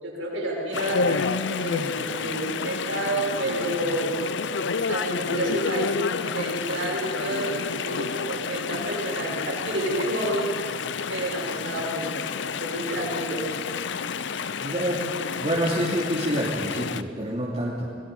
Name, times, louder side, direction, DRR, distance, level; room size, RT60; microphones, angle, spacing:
voice 1, 0.0-4.1 4.9-5.9 6.2-10.5 11.1-12.2 12.4-13.5, right 1 dB, 80° right, -3 dB, 6.2 m, -29 dB
Chatter / Stream, 0.7-17.0, left 5 dB, 60° left, 0.6 m, -30 dB
voice 2, 14.6-15.0 15.4-17.9, equal, 30° right, -7 dB, 2.6 m, -27 dB
26.5 x 19.5 x 5.4 m, 2.3 s
head